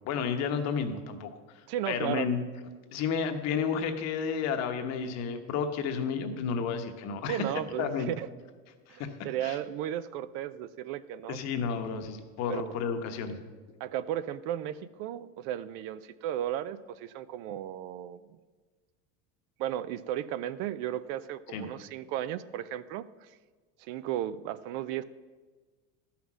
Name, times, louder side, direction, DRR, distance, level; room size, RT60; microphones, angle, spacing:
voice 1, 0.0-1.3 1.5-2.5 2.9-7.4 7.8-8.1 8.9-9.1 9.4-9.6 11.3-13.4 21.5-21.7, left 6 dB, 45° left, 6 dB, 1.1 m, -31 dB
voice 2, 1.7-2.3 7.3-8.3 8.9-11.4 12.5-12.6 13.8-18.2 19.6-23.3 23.8-25.0, right 11 dB, 60° right, 16 dB, 0.5 m, -35 dB
12.5 x 5.8 x 6.1 m, 1.4 s
supercardioid pair, 145°, 35 cm